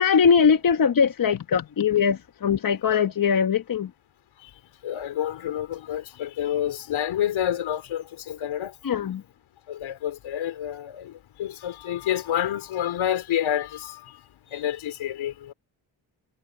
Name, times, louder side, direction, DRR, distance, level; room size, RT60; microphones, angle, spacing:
voice 1, 0.0-3.9 8.8-9.2, left 6 dB, 45° left, 1.2 m, -21 dB
voice 2, 4.8-8.7 9.7-14.1 14.5-15.5, left 11 dB, 80° left, 4.3 m, -28 dB
cardioid pair, 65°, 47 cm